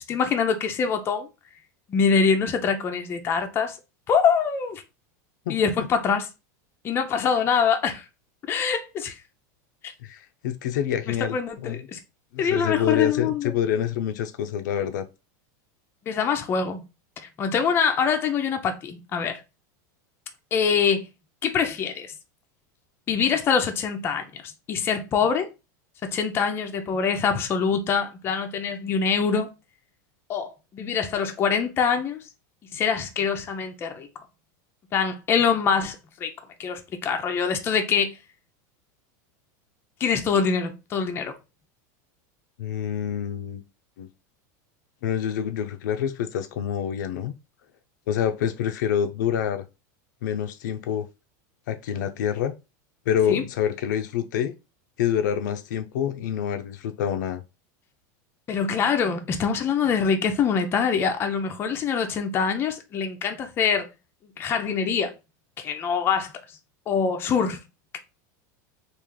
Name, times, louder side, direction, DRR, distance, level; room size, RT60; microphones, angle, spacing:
voice 1, 0.1-1.3 1.9-3.8 4.1-4.8 5.5-6.3 6.8-8.1 8.4-9.2 11.1-12.0 12.4-13.5 16.1-16.8 17.2-19.4 20.5-21.1 21.4-22.1 23.1-25.5 26.0-29.5 30.3-32.2 32.7-34.1 34.9-36.3 36.6-38.2 40.0-41.3 53.3-53.4 58.5-63.9 64.4-65.1 65.6-66.3 66.9-67.6, left 6 dB, 25° left, 0.5 m, -24 dB
voice 2, 5.5-5.9 10.0-11.9 12.3-15.1 42.6-43.6 44.0-44.1 45.0-47.3 48.1-49.6 50.2-51.1 51.7-52.5 53.1-54.5 55.0-57.4, left 9 dB, 80° left, 0.5 m, -27 dB
3.2 x 2.5 x 3.6 m
supercardioid pair, 150°, 10 cm